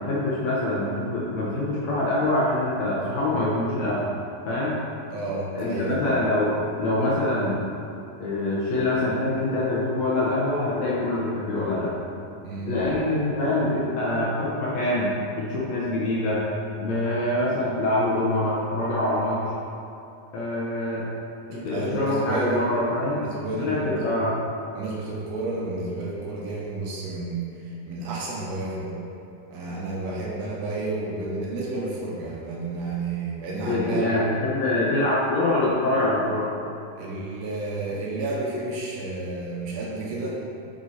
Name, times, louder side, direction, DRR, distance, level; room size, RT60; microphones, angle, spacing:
voice 1, 0.0-4.1 4.5-4.8 5.6-6.5 6.8-7.7 8.2-12.0 12.6-16.4 16.8-19.4 20.3-21.1 21.5-23.2 23.5-24.4 33.6-36.5, left 1 dB, 65° left, -6 dB, 1.8 m, -25 dB
voice 2, 5.1-6.1 12.4-12.8 21.5-24.2 24.7-28.9 29.5-34.1 37.0-40.4, right 2 dB, 70° right, -4 dB, 1.7 m, -31 dB
9.3 x 4.5 x 4.2 m, 2.7 s
omnidirectional pair, 4.1 m